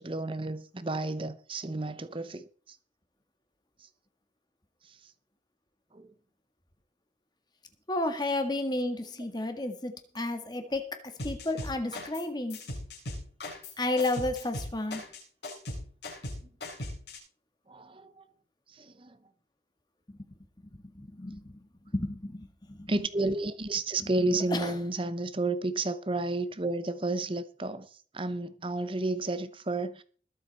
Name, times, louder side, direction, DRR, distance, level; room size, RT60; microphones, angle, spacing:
voice 1, 0.0-2.8 5.9-6.1 17.7-18.1 18.8-19.2 22.9-27.9 28.1-30.0, right 2 dB, 25° right, 0.8 m, -31 dB
voice 2, 7.9-12.6 13.8-15.0 20.1-20.4 20.9-22.9 24.0-24.8, left 2 dB, 20° left, 1.7 m, -32 dB
sound 1, 11.2-12.2 12.5-17.2, left 1 dB, 60° left, 7.3 m, -38 dB
21.0 x 7.4 x 4.3 m
head